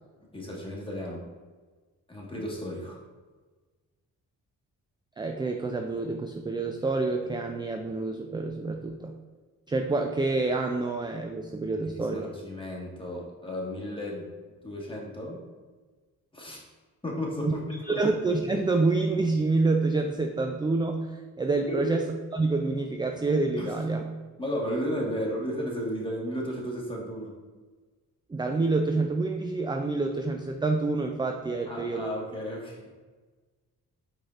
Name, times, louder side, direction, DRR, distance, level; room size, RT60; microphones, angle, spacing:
voice 1, 0.3-1.2 2.1-3.0 11.8-14.2 14.6-15.4 16.3-16.6 17.0-17.6 17.9-18.0 21.7-21.9 23.6-23.7 24.4-27.3 31.7-32.9, equal, 15° left, -3 dB, 1.5 m, -34 dB
voice 2, 5.2-9.2 9.7-12.3 16.5-16.6 17.4-17.5 17.8-21.1 21.4-24.0 28.3-32.1, right 3 dB, 15° right, 4 dB, 0.3 m, -27 dB
4.8 x 4.4 x 2.5 m, 1.4 s
supercardioid pair, 55°, 37 cm